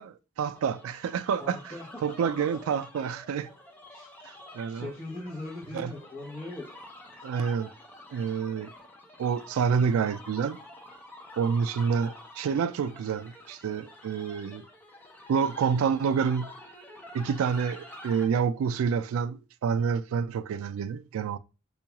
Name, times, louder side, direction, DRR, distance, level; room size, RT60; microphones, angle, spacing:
voice 1, 0.0-1.6 2.0-3.5 4.2-4.9 5.7-5.9 7.2-7.7 8.1-8.7 9.2-10.6 11.4-14.7 15.3-16.5 17.1-21.4, right 6 dB, 85° right, 0.3 m, -28 dB
sound 1, 0.5-18.3, left 1 dB, 10° left, 0.5 m, -48 dB
voice 2, 1.4-1.9 2.2-2.3 3.9-4.1 4.7-7.2, left 2 dB, 25° left, 0.9 m, -40 dB
4.5 x 2.3 x 2.9 m
head